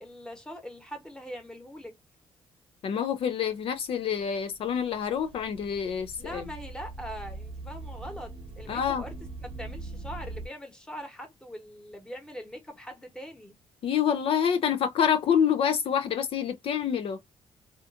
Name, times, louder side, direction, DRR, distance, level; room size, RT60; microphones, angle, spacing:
voice 1, 0.0-2.0 6.2-9.1 9.4-13.6, equal, 5° left, 1.0 m, -42 dB
voice 2, 2.8-6.4 8.7-9.0 13.8-17.2, left 8 dB, 65° left, 0.4 m, -27 dB
sound 1, 3.7-10.5, right 2 dB, 60° right, 0.7 m, -42 dB
2.5 x 2.4 x 2.3 m
cardioid pair, 95°, 10 cm